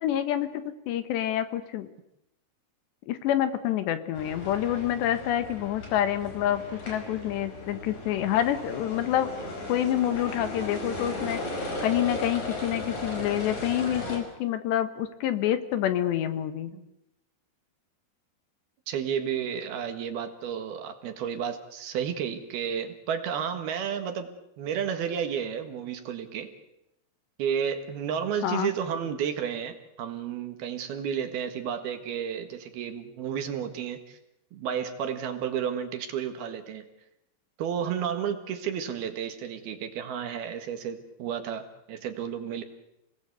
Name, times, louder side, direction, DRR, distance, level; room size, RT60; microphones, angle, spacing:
voice 1, 0.0-1.9 3.1-11.4 11.8-16.7 28.4-28.7, left 11 dB, 75° left, 11 dB, 3.5 m, -27 dB
sound 1, 4.2-14.2, left 1 dB, 40° left, 6.4 m, -36 dB
voice 2, 18.9-26.5 27.4-34.2 34.5-36.9 37.6-42.6, right 8 dB, 65° right, 8 dB, 3.3 m, -32 dB
29.5 x 20.0 x 8.2 m, 0.84 s
omnidirectional pair, 5.2 m